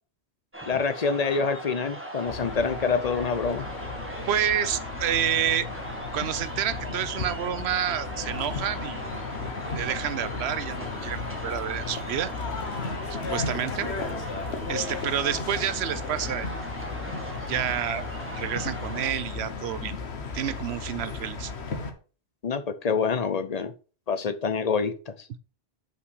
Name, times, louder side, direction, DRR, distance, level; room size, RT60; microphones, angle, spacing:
sound 1, 0.5-19.1, right 1 dB, 10° right, 1.5 m, -39 dB
voice 1, 0.6-3.7 22.4-23.7 24.1-25.1, left 5 dB, 45° left, 0.7 m, -26 dB
sound 2, 2.3-21.9, left 4 dB, 85° left, 1.5 m, -35 dB
voice 2, 4.3-5.7 6.1-9.1 9.7-12.3 13.3-13.9 14.7-16.5 17.5-18.0 18.4-19.9 20.3-21.5, right 9 dB, 80° right, 0.9 m, -29 dB
5.7 x 5.2 x 6.2 m
omnidirectional pair, 1.1 m